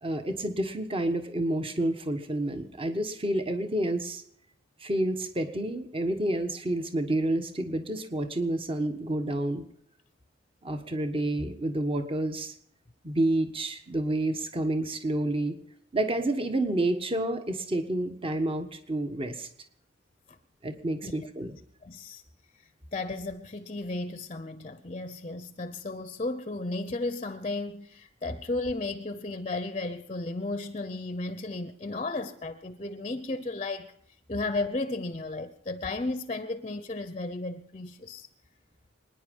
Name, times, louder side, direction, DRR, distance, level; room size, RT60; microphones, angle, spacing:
voice 1, 0.0-4.2 4.8-9.6 10.6-12.5 13.0-15.6 15.9-19.5 20.6-21.5, right 1 dB, 30° right, 1.4 m, -29 dB
voice 2, 21.8-22.2 22.9-33.9 34.3-38.3, left 2 dB, 30° left, 0.7 m, -34 dB
25.5 x 10.0 x 5.5 m
head